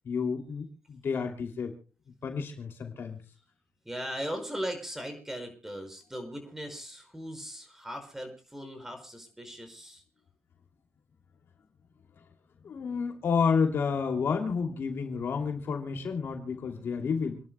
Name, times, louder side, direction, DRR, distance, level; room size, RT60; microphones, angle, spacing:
voice 1, 0.0-1.7 2.2-3.2 12.6-17.4, left 5 dB, 60° left, 4 dB, 2.8 m, -30 dB
voice 2, 3.9-10.0, equal, 10° right, 5 dB, 5.5 m, -38 dB
28.5 x 11.0 x 2.2 m, 0.36 s
cardioid pair, 110°, 4 cm